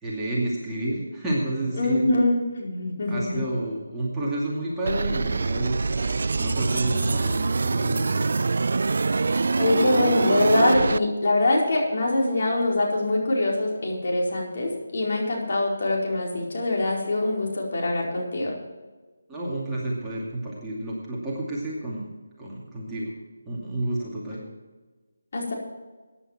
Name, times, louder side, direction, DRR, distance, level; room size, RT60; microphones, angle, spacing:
voice 1, 0.0-2.0 3.1-6.0 6.3-8.2 19.3-22.0 22.4-23.1 23.5-24.4, right 1 dB, 5° right, -7 dB, 2.5 m, -30 dB
voice 2, 1.7-3.4 9.6-18.5 25.3-25.5, left 2 dB, 50° left, -2 dB, 4.5 m, -23 dB
sound 1, 4.9-11.0, right 4 dB, 60° right, 0.3 m, -24 dB
15.0 x 9.9 x 4.5 m, 1.3 s
figure-of-eight pair, 160°, 0 cm